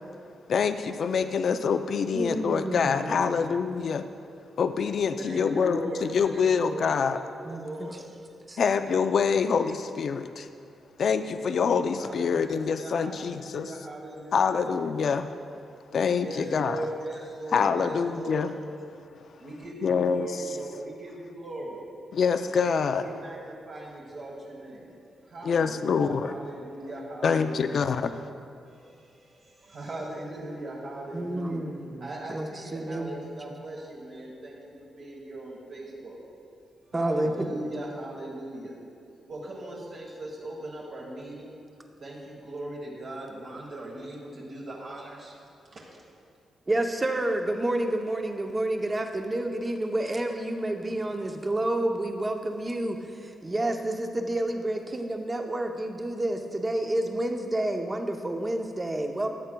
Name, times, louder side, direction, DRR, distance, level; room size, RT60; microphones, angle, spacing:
voice 1, 0.5-4.0 4.6-5.9 6.1-7.2 8.6-10.5 11.0-13.7 14.3-15.3 15.9-16.8 17.5-18.5 19.8-20.3 22.1-23.0 25.4-26.3 27.2-28.1, left 6 dB, 55° left, 9 dB, 0.3 m, -25 dB
voice 2, 2.1-3.5 7.4-7.7 8.5-8.6 31.1-33.3 36.9-37.7 46.7-59.3, right 1 dB, 20° right, 4 dB, 0.6 m, -29 dB
voice 3, 5.2-7.0 7.5-8.0 12.0-14.7 16.2-18.5 19.4-21.8 23.0-24.9 25.2-27.9 28.7-31.7 31.9-36.2 36.9-38.8 39.3-41.6 42.0-45.3 45.7-45.8, right 1 dB, 55° right, -3 dB, 1.3 m, -39 dB
13.5 x 8.7 x 2.2 m, 2.5 s
cardioid pair, 130°, 0 cm